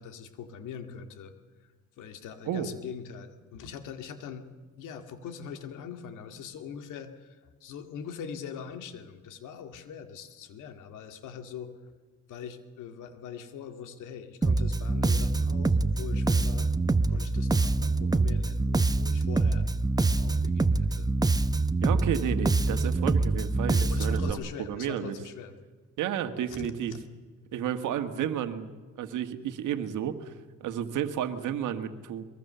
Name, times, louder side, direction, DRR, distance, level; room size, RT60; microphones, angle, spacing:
voice 1, 0.0-1.3 1.6-1.7 2.0-4.5 4.8-11.7 12.3-16.7 17.1-19.7 20.0-21.1 21.9-22.1 23.9-25.5 26.5-27.0, left 7 dB, 90° left, 7 dB, 2.2 m, -42 dB
Bass guitar, 14.4-24.3, right 3 dB, 15° right, 0.8 m, -25 dB
voice 2, 21.8-25.2 26.0-26.9 27.5-28.7 29.0-30.3 30.6-32.3, right 9 dB, 85° right, 9 dB, 1.7 m, -32 dB
23.0 x 22.5 x 6.9 m, 1.4 s
cardioid pair, 90°, 30 cm